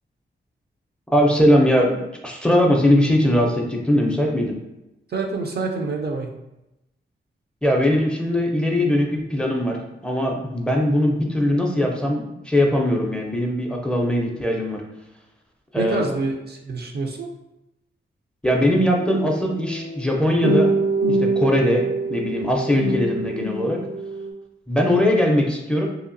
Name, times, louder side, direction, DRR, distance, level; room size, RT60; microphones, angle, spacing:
voice 1, 1.1-4.6 7.6-14.8 15.7-16.1 18.4-20.8 21.1-23.8 24.7-25.9, left 1 dB, 5° left, 0 dB, 0.5 m, -20 dB
voice 2, 5.1-6.3 15.8-17.3, right 3 dB, 55° right, 2 dB, 0.5 m, -27 dB
sound 1, 18.6-24.3, right 2 dB, 90° right, 0.8 m, -25 dB
2.7 x 2.4 x 2.5 m, 0.91 s
cardioid pair, 65°, 20 cm